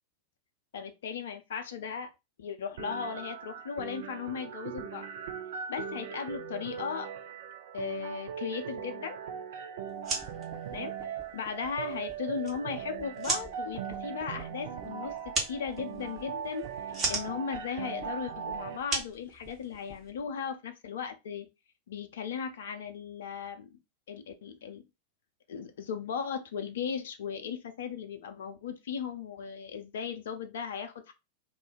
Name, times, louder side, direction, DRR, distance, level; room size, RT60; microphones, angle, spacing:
voice 1, 0.7-2.1 2.4-5.1 5.7-7.1 7.7-9.2 10.7-10.9 11.3-16.7 17.1-21.5 21.9-23.7 24.1-24.8 25.5-31.1, left 6 dB, 60° left, 0.5 m, -37 dB
sound 1, 2.8-18.8, right 7 dB, 55° right, 0.4 m, -40 dB
sound 2, 9.9-20.1, right 3 dB, 25° right, 1.1 m, -38 dB
sound 3, 10.2-20.3, equal, 10° right, 0.8 m, -55 dB
2.5 x 2.1 x 3.8 m
figure-of-eight pair, 90°, 0 cm